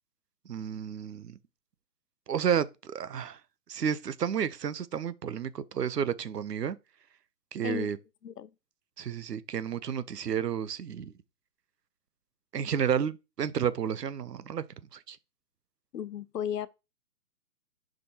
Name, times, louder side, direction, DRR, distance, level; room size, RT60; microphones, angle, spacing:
voice 1, 0.5-1.4 2.3-3.4 3.7-6.8 7.5-8.0 9.0-11.1 12.5-14.6 14.9-15.2, right 8 dB, 90° right, 0.9 m, -31 dB
voice 2, 15.9-16.7, left 9 dB, 85° left, 0.8 m, -34 dB
11.0 x 5.1 x 2.9 m
hypercardioid pair, 135°, 46 cm